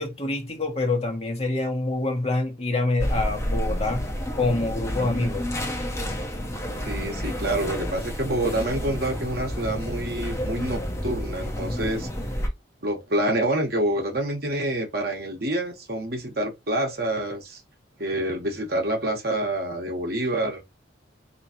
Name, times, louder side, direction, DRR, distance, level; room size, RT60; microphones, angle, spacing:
voice 1, 0.0-4.1 4.3-5.5, left 2 dB, 35° left, 1.2 m, -26 dB
sound 1, 3.0-12.5, equal, 15° left, 0.9 m, -30 dB
voice 2, 6.9-12.1 12.8-17.6 18.0-20.6, right 1 dB, 55° right, 1.3 m, -27 dB
3.9 x 3.0 x 2.9 m
head